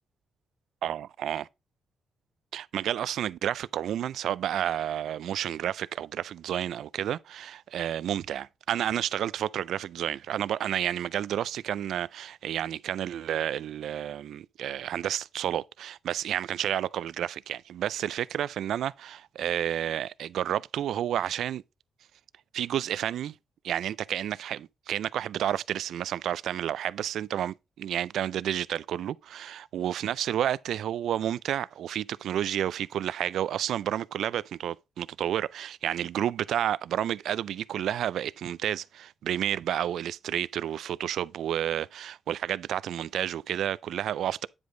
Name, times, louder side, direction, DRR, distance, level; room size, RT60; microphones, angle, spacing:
voice 1, 0.8-1.5 2.5-21.6 22.5-23.3 23.6-44.5, right 10 dB, 75° right, 0.3 m, -30 dB
9.7 x 5.1 x 3.7 m
wide cardioid pair, 165°, 0 cm